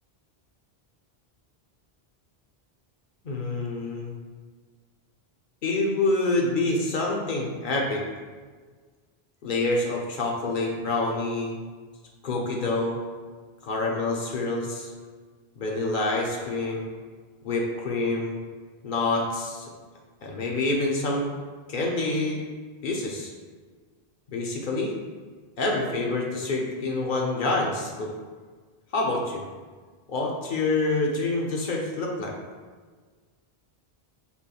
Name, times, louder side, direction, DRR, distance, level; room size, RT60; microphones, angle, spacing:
voice 1, 3.2-4.1 5.6-8.0 9.4-11.6 12.2-13.0 13.6-14.9 15.6-16.9 17.4-18.3 18.8-19.7 20.2-21.3 21.7-22.4 22.8-23.3 24.3-24.9 25.6-28.1 28.9-29.4 30.1-32.3, left 2 dB, 55° left, -1 dB, 0.7 m, -27 dB
5.5 x 3.0 x 2.3 m, 1.5 s
omnidirectional pair, 1.1 m